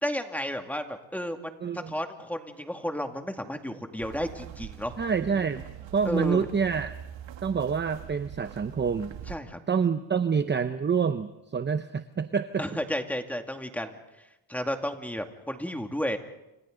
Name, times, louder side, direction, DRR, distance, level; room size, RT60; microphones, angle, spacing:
voice 1, 0.0-4.9 6.0-6.5 9.3-9.6 12.6-14.0 14.5-16.2, equal, 5° left, 4 dB, 2.3 m, -32 dB
voice 2, 1.6-1.9 5.0-5.6 5.9-6.9 7.4-9.1 9.7-12.6, right 6 dB, 25° right, 10 dB, 0.8 m, -27 dB
sound 1, 4.0-9.4, right 10 dB, 70° right, 1.9 m, -43 dB
30.0 x 27.5 x 3.9 m, 0.95 s
cardioid pair, 110°, 47 cm